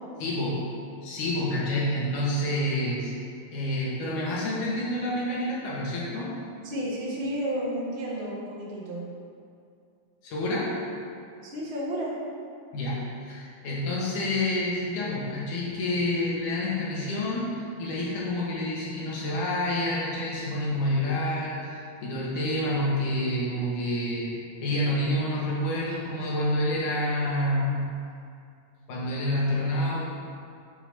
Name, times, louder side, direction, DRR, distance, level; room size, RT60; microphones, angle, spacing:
voice 1, 0.2-0.7 1.0-3.1 3.5-6.3 10.2-10.8 12.7-27.8 28.9-30.1, left 1 dB, 80° left, -5 dB, 3.1 m, -28 dB
voice 2, 6.6-9.0 11.4-12.1, equal, 35° right, -6 dB, 1.1 m, -32 dB
7.0 x 5.0 x 5.8 m, 2.4 s
omnidirectional pair, 3.6 m